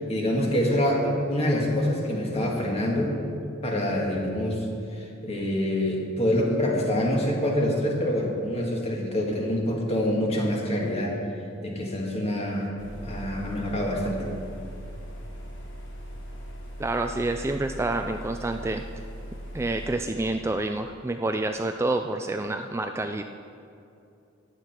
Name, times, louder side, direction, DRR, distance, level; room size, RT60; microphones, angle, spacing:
voice 1, 0.0-3.1 3.6-4.7 4.9-11.2 11.6-12.7 13.0-14.3, left 1 dB, 35° left, -1 dB, 1.9 m, -26 dB
sound 1, 12.8-20.0, equal, 75° left, 1.7 m, -39 dB
voice 2, 16.8-18.8 19.5-23.2, right 2 dB, 15° right, 6 dB, 0.3 m, -28 dB
14.5 x 9.8 x 4.5 m, 2.6 s
head